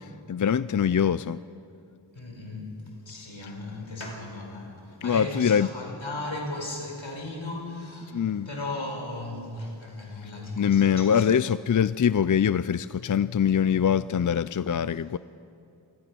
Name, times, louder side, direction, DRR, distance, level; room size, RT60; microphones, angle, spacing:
voice 1, 0.3-1.4 5.0-5.7 8.1-8.5 10.6-15.2, left 8 dB, 45° left, 0.4 m, -23 dB
voice 2, 2.1-11.3 14.9-15.0, left 2 dB, 75° left, 4.9 m, -36 dB
27.0 x 20.0 x 6.1 m
wide cardioid pair, 65°, 46 cm